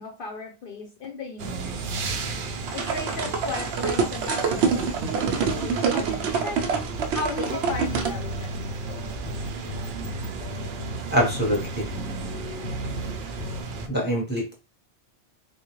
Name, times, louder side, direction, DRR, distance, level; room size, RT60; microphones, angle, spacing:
voice 1, 0.0-1.8 2.7-6.6 7.1-8.6, left 3 dB, 60° left, 3 dB, 0.7 m, -36 dB
sound 1, 1.4-13.9, right 4 dB, 60° right, 0.6 m, -34 dB
sound 2, 2.7-8.1, right 5 dB, 90° right, 0.9 m, -26 dB
sound 3, 7.7-13.6, left 2 dB, 90° left, 1.0 m, -36 dB
voice 2, 11.1-11.9 13.9-14.5, equal, 10° right, -3 dB, 0.9 m, -24 dB
3.7 x 2.3 x 3.0 m, 0.31 s
omnidirectional pair, 1.1 m